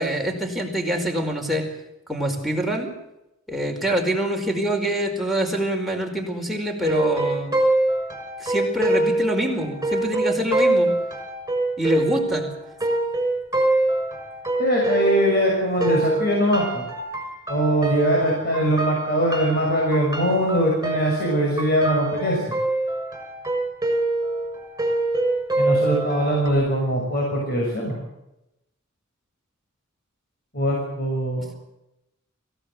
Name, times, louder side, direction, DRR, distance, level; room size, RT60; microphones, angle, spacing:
voice 1, 0.0-1.7 2.1-2.9 3.5-7.5 8.4-10.9 11.8-12.5, equal, ahead, 0 dB, 4.8 m, -25 dB
sound 1, 6.8-15.5 15.8-26.5, right 2 dB, 15° right, 6.6 m, -24 dB
voice 2, 14.6-16.8 17.5-22.4 25.6-28.0 30.5-31.5, equal, 50° left, -2 dB, 6.6 m, -22 dB
27.0 x 16.5 x 7.9 m, 0.90 s
head